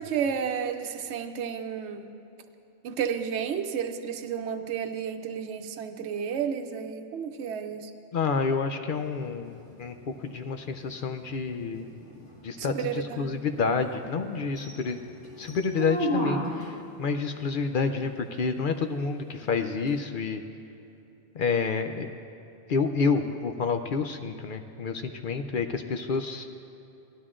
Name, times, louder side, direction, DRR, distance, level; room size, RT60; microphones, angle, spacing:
voice 1, 0.0-2.1 2.8-7.9 12.6-13.4 13.8-13.9, right 7 dB, 75° right, 6 dB, 0.9 m, -32 dB
voice 2, 8.1-11.9 12.4-15.0 15.4-20.4 21.3-22.1 22.7-26.5, left 5 dB, 60° left, 7 dB, 0.6 m, -29 dB
sound 1, 8.9-16.9 19.9-20.0, equal, 85° left, 2.2 m, -36 dB
17.5 x 12.0 x 2.5 m, 2.8 s
omnidirectional pair, 1.2 m